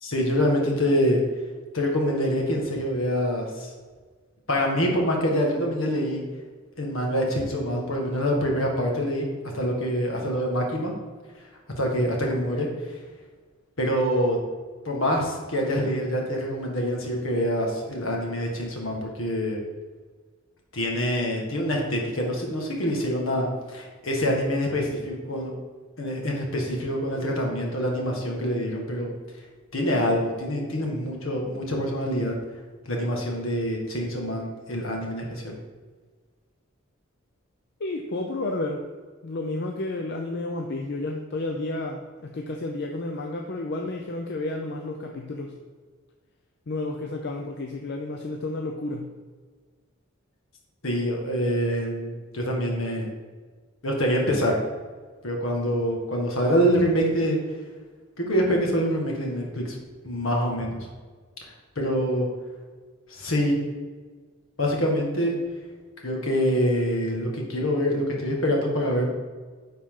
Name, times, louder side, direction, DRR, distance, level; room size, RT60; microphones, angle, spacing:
voice 1, 0.0-1.2 1.7-3.7 4.5-6.2 6.8-9.3 9.5-10.9 11.8-13.0 13.8-14.4 14.8-19.6 20.7-25.5 26.0-29.1 29.7-32.3 32.8-35.6 50.8-53.1 53.8-54.6 55.2-57.4 58.2-59.8 60.0-60.8 61.4-62.3 63.1-63.6 64.6-65.3 66.0-69.1, equal, 75° left, 0 dB, 1.6 m, -25 dB
voice 2, 37.8-38.8 39.2-45.5 46.7-49.1, left 2 dB, 55° left, 2 dB, 0.5 m, -31 dB
9.8 x 4.3 x 3.7 m, 1.5 s
head